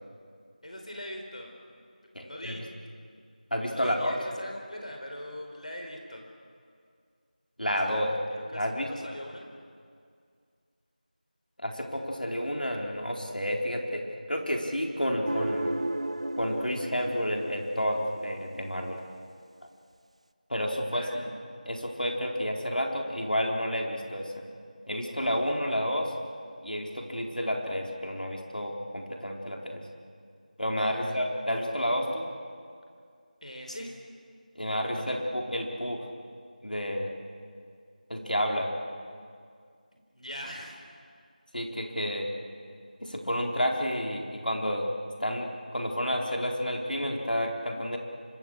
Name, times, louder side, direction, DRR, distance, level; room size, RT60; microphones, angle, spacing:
voice 1, 0.6-1.8 2.2-2.7 3.7-6.3 7.9-9.5 20.9-21.3 30.9-31.2 33.4-33.9 34.8-35.2 39.9-40.9, left 1 dB, 55° left, 2 dB, 4.3 m, -42 dB
voice 2, 2.1-2.6 3.5-4.1 7.6-8.1 8.5-8.9 11.6-15.7 16.4-19.0 20.5-21.3 21.7-24.3 24.9-26.1 26.6-29.8 30.6-32.3 34.5-36.0 36.6-37.1 38.1-38.7 41.5-42.3 43.0-44.9 45.2-48.0, equal, 85° left, 1 dB, 4.4 m, -30 dB
sound 1, 15.3-18.6, right 1 dB, 45° right, 0.8 m, -33 dB
26.0 x 23.5 x 6.6 m, 2.2 s
figure-of-eight pair, 175°, 5 cm